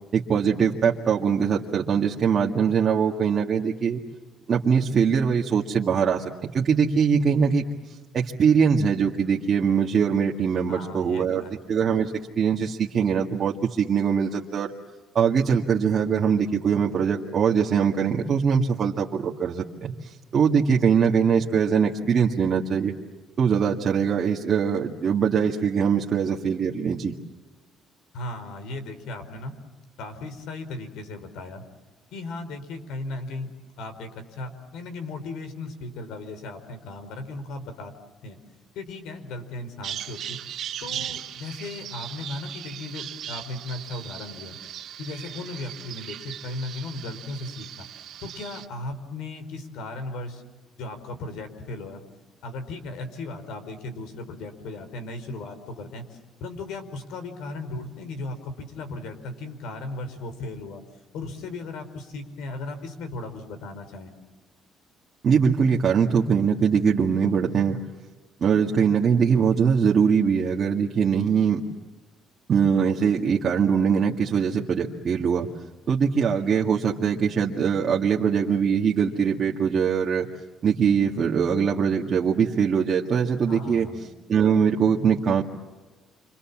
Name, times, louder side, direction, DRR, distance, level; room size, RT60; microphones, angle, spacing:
voice 1, 0.1-4.0 4.5-7.6 8.1-11.4 11.7-14.7 15.1-22.9 23.4-27.1 65.2-67.8 68.4-71.6 72.5-75.5 75.9-80.3 80.6-83.9 84.3-85.4, right 6 dB, 35° right, -2 dB, 1.9 m, -22 dB
voice 2, 10.7-11.6 28.1-29.5 30.0-31.6 32.1-37.9 38.2-38.4 38.7-40.4 40.8-44.6 45.0-47.9 48.2-50.4 50.8-52.0 52.4-60.8 61.1-64.1 83.5-84.0, left 2 dB, 80° left, 9 dB, 4.7 m, -36 dB
Bird vocalization bird call bird song, 39.8-48.7, right 10 dB, 50° right, 2.3 m, -38 dB
29.0 x 26.0 x 7.4 m, 1.2 s
cardioid pair, 160°, 0 cm